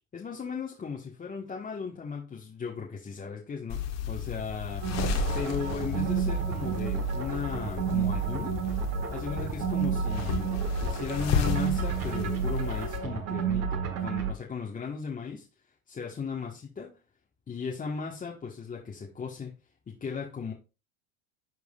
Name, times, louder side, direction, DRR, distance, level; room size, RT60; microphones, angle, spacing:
voice 1, 0.1-4.8 5.3-8.6 9.1-10.5 10.8-15.4 15.9-17.0 17.5-19.5 19.9-20.5, left 5 dB, 20° left, 1.4 m, -36 dB
sound 1, 3.7-13.0, left 7 dB, 40° left, 1.6 m, -33 dB
sound 2, 4.8-14.3, right 7 dB, 35° right, 1.7 m, -31 dB
11.0 x 4.7 x 2.4 m
hypercardioid pair, 100°, 41 cm